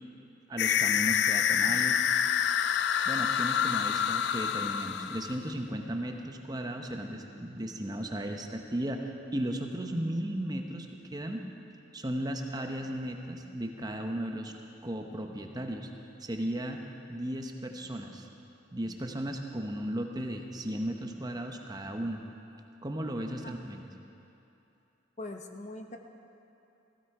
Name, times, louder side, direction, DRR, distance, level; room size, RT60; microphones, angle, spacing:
voice 1, 0.5-2.0 3.1-11.4 11.9-14.5 14.8-15.9 16.2-16.8 17.1-18.3 18.7-22.2 22.8-23.9, right 1 dB, 20° right, 3 dB, 0.8 m, -35 dB
sound 1, 0.6-5.5, left 8 dB, 55° left, 0.3 m, -27 dB
voice 2, 23.2-23.6 25.2-26.0, left 2 dB, 35° left, 4 dB, 0.8 m, -42 dB
16.0 x 15.5 x 4.8 m, 2.9 s
head